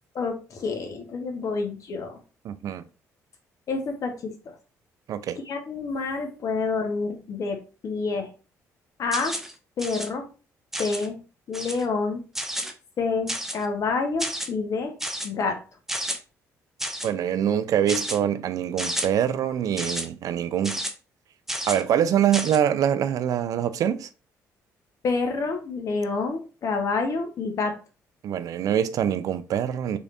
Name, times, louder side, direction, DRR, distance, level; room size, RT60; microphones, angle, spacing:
voice 1, 0.1-2.2 3.7-4.5 5.5-8.3 9.0-9.4 9.8-10.3 10.8-11.2 11.5-12.2 13.0-14.9 15.2-15.6 25.0-27.7, left 4 dB, 60° left, 1.0 m, -28 dB
voice 2, 2.4-2.8 5.1-5.4 17.0-20.8 21.7-24.1 28.2-30.0, right 9 dB, 65° right, 0.4 m, -24 dB
sound 1, 9.1-9.5 9.8-10.1 10.7-11.1 11.5-11.9 12.4-12.7 13.3-13.7 14.2-14.5 15.0-15.3 15.9-16.2 16.8-17.1 17.9-18.2 18.8-19.1 19.8-20.1 20.6-20.9 21.5-21.8 22.3-22.6, right 1 dB, 5° right, 0.7 m, -31 dB
3.7 x 3.3 x 2.5 m
supercardioid pair, 75°, 6 cm